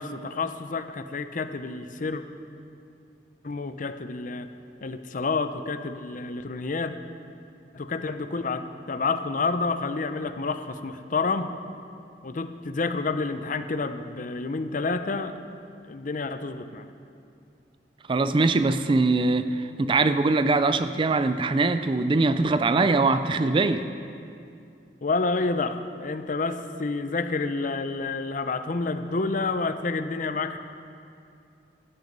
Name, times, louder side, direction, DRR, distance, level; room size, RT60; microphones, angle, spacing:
voice 1, 0.0-2.2 3.4-4.5 4.8-6.9 7.7-11.5 12.2-15.4 15.9-16.9 25.0-30.6, left 3 dB, 50° left, 10 dB, 0.6 m, -29 dB
voice 2, 18.1-23.9, right 3 dB, 30° right, 11 dB, 0.4 m, -22 dB
13.0 x 11.0 x 5.3 m, 2.5 s
head